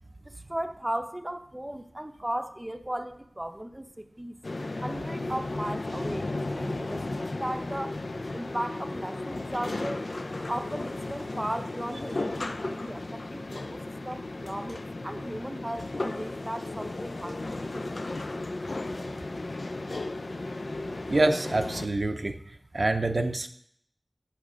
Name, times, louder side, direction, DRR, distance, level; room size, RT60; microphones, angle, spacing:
voice 1, 0.3-4.4 4.8-8.0 8.3-10.0 10.5-13.8 14.1-17.9, right 1 dB, 20° right, 7 dB, 0.6 m, -36 dB
sound 1, 4.4-21.9, left 2 dB, 75° left, 0.5 m, -35 dB
voice 2, 21.1-22.3 22.7-23.5, right 2 dB, 65° right, 6 dB, 0.6 m, -26 dB
7.4 x 7.0 x 4.9 m, 0.68 s
wide cardioid pair, 40°, 0 cm